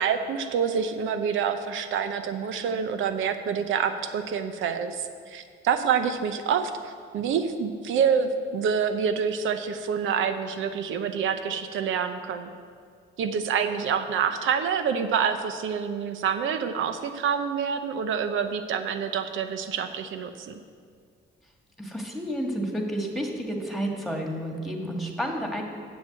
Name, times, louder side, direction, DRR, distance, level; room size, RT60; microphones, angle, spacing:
voice 1, 0.0-12.5 13.2-20.5, right 7 dB, 80° right, 9 dB, 0.8 m, -27 dB
voice 2, 21.8-25.6, equal, ahead, 1 dB, 1.8 m, -30 dB
7.5 x 7.2 x 7.7 m, 2.1 s
cardioid pair, 90°, 20 cm